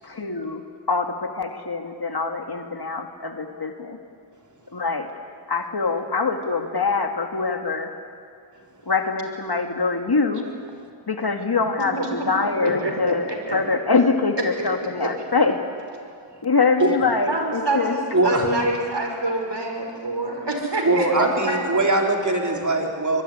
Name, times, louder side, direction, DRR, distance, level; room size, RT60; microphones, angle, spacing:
voice 1, 0.0-0.6 0.9-4.0 4.7-5.1 5.5-7.9 8.9-10.4 11.1-15.6 16.4-17.9 21.2-21.3, left 4 dB, 50° left, 5 dB, 2.0 m, -24 dB
voice 2, 11.9-12.3 12.6-12.9 13.3-13.6 15.0-15.1 17.3-21.6, right 2 dB, 60° right, 3 dB, 5.7 m, -26 dB
voice 3, 18.1-18.5 20.8-23.2, right 2 dB, 35° right, 1 dB, 4.0 m, -21 dB
24.0 x 22.5 x 10.0 m, 2.3 s
wide cardioid pair, 50°, 48 cm